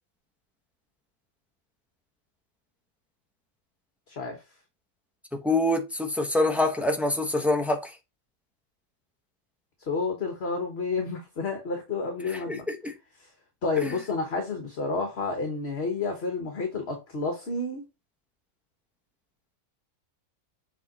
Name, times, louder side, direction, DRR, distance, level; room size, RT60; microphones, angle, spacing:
voice 1, 4.1-4.4 9.9-12.7 13.2-13.3 13.6-17.8, left 3 dB, 50° left, 1.4 m, -30 dB
voice 2, 5.3-7.9 12.5-12.9 13.8-13.9, left 2 dB, ahead, 0.8 m, -25 dB
7.4 x 3.6 x 4.2 m
omnidirectional pair, 1.5 m